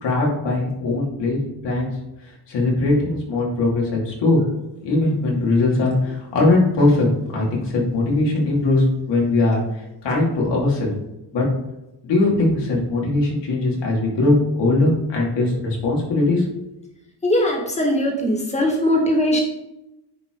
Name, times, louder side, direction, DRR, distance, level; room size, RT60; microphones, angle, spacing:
voice 1, 0.0-1.9 2.2-4.4 4.8-10.9 11.3-11.5 12.0-16.5, left 2 dB, 80° left, -2 dB, 2.8 m, -20 dB
voice 2, 17.2-19.4, left 1 dB, 15° left, 0 dB, 1.7 m, -20 dB
9.9 x 4.9 x 3.9 m, 0.90 s
wide cardioid pair, 175°, 42 cm